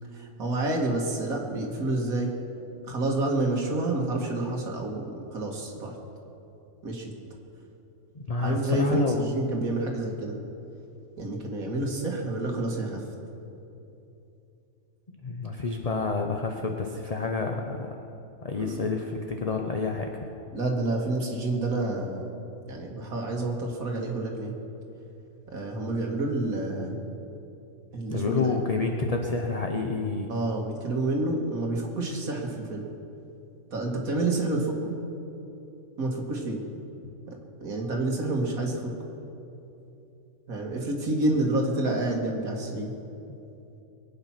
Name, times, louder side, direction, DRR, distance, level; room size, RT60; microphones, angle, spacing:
voice 1, 0.1-2.3 2.9-5.9 6.8-7.1 8.4-10.4 11.2-13.0 18.6-18.9 20.5-22.3 22.7-24.5 25.5-27.0 27.9-28.5 30.3-32.8 33.7-34.9 36.0-36.6 37.3-38.9 40.5-42.9, right 2 dB, 85° right, 0 dB, 2.2 m, -29 dB
voice 2, 8.1-9.2 15.2-17.9 18.4-20.1 28.1-30.3, left 3 dB, 30° left, 2 dB, 0.8 m, -28 dB
22.5 x 8.9 x 5.9 m, 2.8 s
omnidirectional pair, 1.5 m